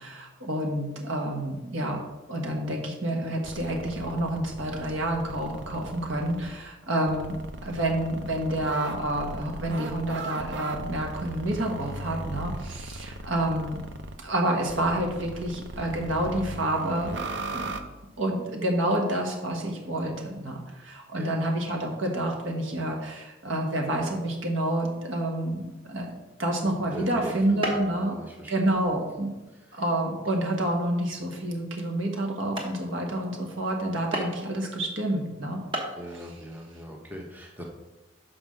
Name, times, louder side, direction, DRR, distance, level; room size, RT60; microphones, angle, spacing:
voice 1, 0.0-2.0 2.3-13.8 14.2-17.1 17.5-17.8 18.2-26.1 26.4-28.2 28.5-29.3 29.7-35.6, right 1 dB, 80° right, 1 dB, 1.5 m, -28 dB
sound 1, 3.4-6.5 7.1-14.2 14.7-17.8, right 2 dB, 60° right, 0.6 m, -38 dB
voice 2, 21.1-21.5 26.9-28.8 29.7-29.8 35.9-37.6, equal, 10° right, 0 dB, 0.9 m, -41 dB
sound 2, 27.6-28.0 28.4-28.8 29.4-29.5 30.1-30.3 30.9-31.0 31.6-31.7 32.2-32.3 32.6-32.8 34.1-34.5 35.4-35.5 35.7-36.0, right 1 dB, 25° right, 1.1 m, -33 dB
5.8 x 4.9 x 6.4 m, 1.1 s
head